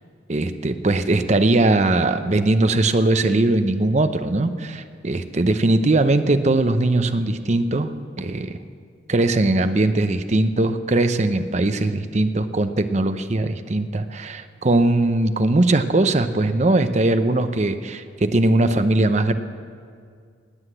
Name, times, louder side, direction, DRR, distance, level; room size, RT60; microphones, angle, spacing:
voice 1, 0.3-8.6 9.1-19.3, right 2 dB, 35° right, 10 dB, 0.6 m, -20 dB
19.5 x 8.0 x 7.8 m, 2.2 s
head